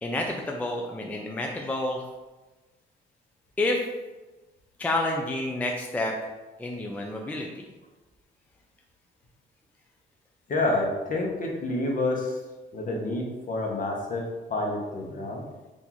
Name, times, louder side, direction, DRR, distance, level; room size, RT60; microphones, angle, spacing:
voice 1, 0.0-2.1 3.6-3.8 4.8-6.3 6.6-7.6, left 2 dB, 10° left, 1 dB, 0.3 m, -29 dB
voice 2, 10.5-12.4 12.7-15.4, left 2 dB, 40° left, 0 dB, 0.8 m, -28 dB
3.8 x 2.6 x 2.9 m, 1.2 s
cardioid pair, 90°, 20 cm